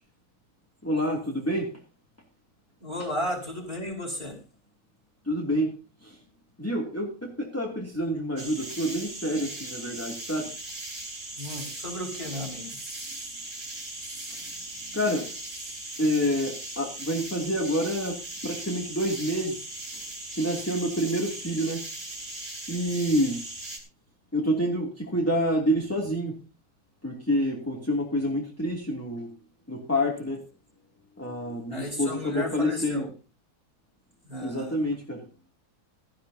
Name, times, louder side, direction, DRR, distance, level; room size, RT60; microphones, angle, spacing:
voice 1, 0.8-1.7 3.0-3.1 5.3-5.7 6.0-6.2 6.6-10.5 14.9-15.3 16.0-19.6 20.4-21.8 22.7-23.4 24.3-26.4 27.0-29.3 29.7-30.4 31.2-33.1 34.4-35.2, equal, 5° left, -1 dB, 2.6 m, -28 dB
voice 2, 2.8-4.4 11.4-12.7 31.7-33.1 34.3-34.8, left 1 dB, 15° right, 0 dB, 5.2 m, -33 dB
sound 1, 8.4-23.8, right 2 dB, 40° right, 4.5 m, -38 dB
17.5 x 14.0 x 2.8 m, 0.34 s
omnidirectional pair, 2.3 m